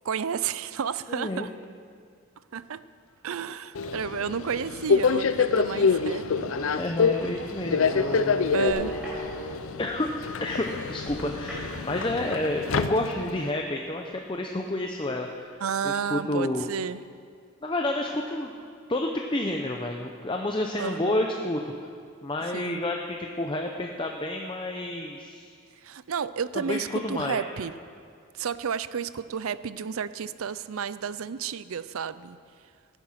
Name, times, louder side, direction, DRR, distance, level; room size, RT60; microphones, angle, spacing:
voice 1, 0.0-1.5 2.5-2.8 3.2-6.8 7.2-7.3 8.5-8.9 15.6-17.0 20.8-21.2 22.5-22.8 25.8-27.7 28.3-32.4, right 7 dB, 80° right, 15 dB, 0.5 m, -32 dB
voice 2, 1.1-1.5 6.8-7.8 8.5-8.6 9.8-10.1 10.4-15.5 15.8-16.7 17.6-18.5 18.9-21.7 22.2-25.5 26.7-27.4, left 1 dB, 25° left, 2 dB, 0.7 m, -29 dB
Subway metro underground, 3.8-13.5, left 5 dB, 75° left, 0.5 m, -27 dB
sound 1, 4.8-4.9 5.4-5.5 5.7-9.8 11.5-12.6, equal, 5° right, 4.5 m, -37 dB
sound 2, 8.7-10.0 10.5-12.6 13.2-13.3, left 1 dB, 40° left, 2.8 m, -48 dB
17.0 x 10.0 x 5.8 m, 2.2 s
head